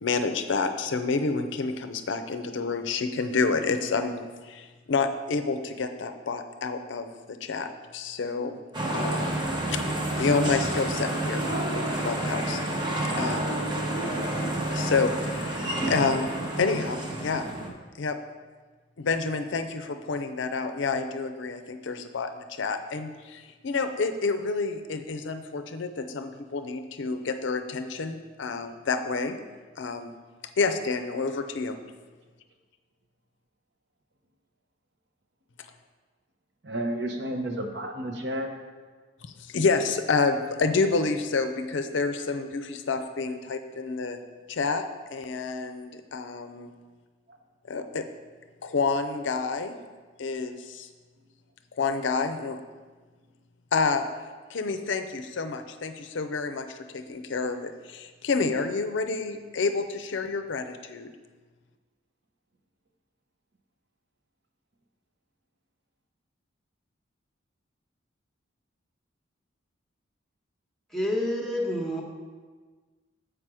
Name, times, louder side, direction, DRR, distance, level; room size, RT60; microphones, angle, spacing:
voice 1, 0.0-8.5 8.9-9.4 9.7-9.8 10.2-11.5 11.7-12.6 13.2-13.5 14.7-17.5 18.0-18.2 19.0-29.4 29.8-30.1 30.6-31.8 39.2-44.2 44.5-44.9 45.1-46.7 47.7-48.1 48.6-49.8 50.2-50.9 51.8-52.6 53.7-54.0 54.5-61.1, left 4 dB, 65° left, 7 dB, 0.5 m, -29 dB
sound 1, 8.7-17.7, right 1 dB, 25° right, 0.8 m, -29 dB
voice 2, 36.6-38.5 44.1-44.4, right 1 dB, 60° right, 3 dB, 0.8 m, -32 dB
voice 3, 70.9-72.0, left 1 dB, ahead, -1 dB, 1.0 m, -28 dB
7.5 x 4.9 x 4.8 m, 1.4 s
head